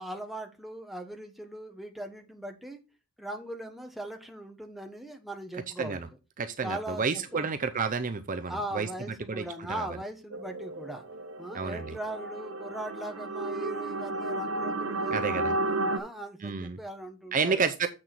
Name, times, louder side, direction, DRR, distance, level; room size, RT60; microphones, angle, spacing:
voice 1, 0.0-2.8 3.2-6.0 6.6-7.5 8.5-11.0 11.4-15.6 15.9-17.6, right 1 dB, ahead, 4 dB, 1.2 m, -39 dB
voice 2, 6.4-8.9 9.3-9.4 9.8-9.9 11.5-12.0 15.1-15.5 16.4-16.8 17.3-17.9, right 5 dB, 40° right, 8 dB, 0.6 m, -30 dB
sound 1, 10.3-16.0, right 2 dB, 65° right, 1.0 m, -33 dB
7.3 x 6.5 x 4.4 m, 0.29 s
head